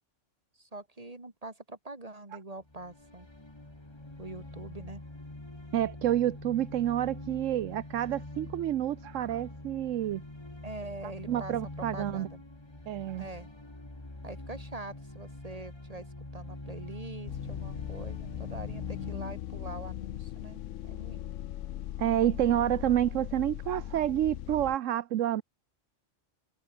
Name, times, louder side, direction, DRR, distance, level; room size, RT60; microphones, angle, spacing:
voice 1, 0.6-3.3 4.2-5.0 10.6-12.4 13.2-13.5 14.2-16.1 16.3-21.3, right 2 dB, 30° right, 3.0 m, -44 dB
sound 1, 2.6-19.1, left 2 dB, 20° left, 2.4 m, -45 dB
voice 2, 5.7-10.2 11.3-12.3 12.9-13.3 22.0-25.4, right 12 dB, 80° right, 1.0 m, -29 dB
sound 2, 17.3-24.8, left 12 dB, 75° left, 1.0 m, -39 dB
omnidirectional pair, 1.3 m